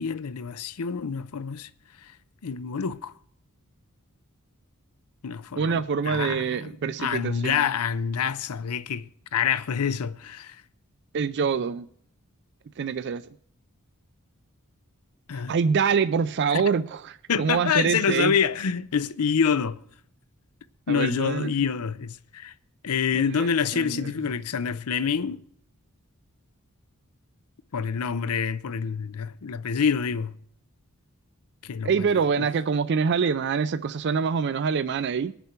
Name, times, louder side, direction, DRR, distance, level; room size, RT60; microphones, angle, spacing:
voice 1, 0.0-1.7 2.4-3.1 5.2-5.8 6.1-6.4 7.0-10.6 15.3-15.5 16.5-16.6 17.3-19.8 20.9-22.5 22.8-25.4 27.7-30.3 31.6-31.9 32.4-32.5, left 6 dB, 80° left, 0.6 m, -27 dB
voice 2, 5.6-7.7 11.1-11.9 12.8-13.3 15.3-18.3 20.9-21.5 23.1-24.1 31.8-35.3, right 6 dB, 50° right, 0.4 m, -25 dB
20.5 x 6.9 x 4.4 m
head